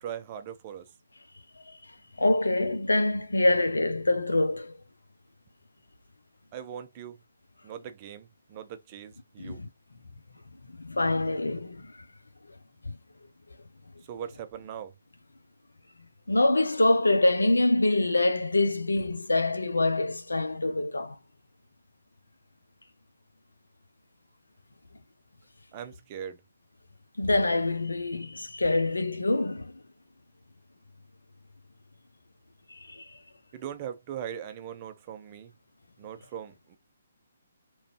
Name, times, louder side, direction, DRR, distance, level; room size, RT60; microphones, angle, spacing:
voice 1, 0.0-0.9 6.5-7.2 7.6-9.6 14.1-14.9 25.7-26.4 33.5-35.5 36.0-36.8, right 9 dB, 30° right, 0.5 m, -40 dB
voice 2, 2.2-4.7 9.4-9.7 10.8-11.8 16.3-21.2 27.2-29.7 32.7-33.1, left 2 dB, 75° left, 0.6 m, -25 dB
3.1 x 2.5 x 2.8 m
figure-of-eight pair, 135°, 0 cm